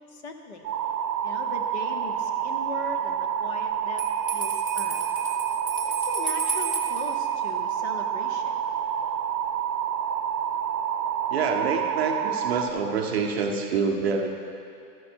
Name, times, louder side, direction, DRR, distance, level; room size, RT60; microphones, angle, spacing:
voice 1, 0.1-0.7 1.2-4.0 4.3-5.0 5.8-8.5, left 3 dB, 40° left, 3 dB, 0.9 m, -39 dB
sound 1, 0.6-12.7, right 9 dB, 75° right, 0.7 m, -28 dB
Bell, 4.0-7.1, right 4 dB, 25° left, 0.3 m, -33 dB
voice 2, 11.3-14.3, right 5 dB, 40° right, 3 dB, 0.7 m, -26 dB
13.5 x 6.1 x 4.4 m, 2.5 s
hypercardioid pair, 165°, 49 cm